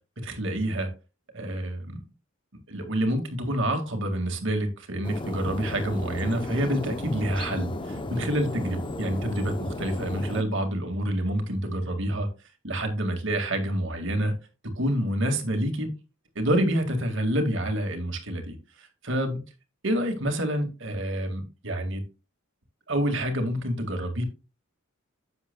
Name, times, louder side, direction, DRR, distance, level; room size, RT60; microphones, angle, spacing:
voice 1, 0.2-0.9 1.3-2.0 2.7-12.3 12.6-14.3 14.8-15.9 16.4-19.4 19.8-22.0 22.9-24.2, right 1 dB, 60° right, 1.9 m, -27 dB
sound 1, 5.0-10.4, left 2 dB, 25° left, 0.6 m, -34 dB
10.5 x 7.8 x 2.2 m
head